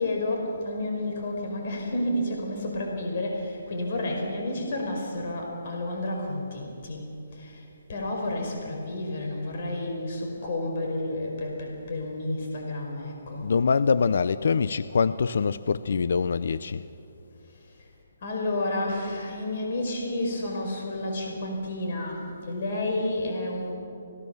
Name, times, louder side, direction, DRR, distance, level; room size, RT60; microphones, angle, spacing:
voice 1, 0.0-13.5 17.4-17.9 18.2-23.7, left 1 dB, 50° left, 5.0 m, -31 dB
voice 2, 13.4-16.8, left 5 dB, 65° left, 0.6 m, -24 dB
26.0 x 18.5 x 7.0 m
hypercardioid pair, 155°, 0 cm